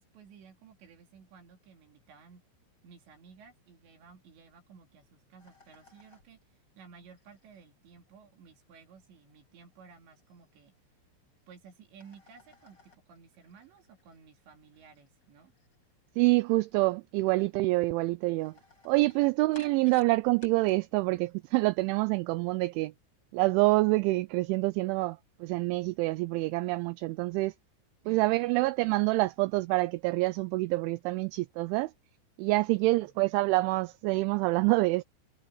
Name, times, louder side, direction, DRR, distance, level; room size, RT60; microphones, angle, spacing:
voice 1, 0.0-2.4 2.8-10.7 11.5-15.5 28.0-28.5 32.7-33.1, right 6 dB, 60° right, 4.9 m, -55 dB
sound 1, 5.4-11.4 11.8-20.7, left 2 dB, 20° left, 8.3 m, -60 dB
voice 2, 16.2-18.5 18.9-22.9 23.3-27.5 28.1-31.9 32.4-35.0, right 22 dB, 85° right, 2.8 m, -27 dB
omnidirectional pair, 5.9 m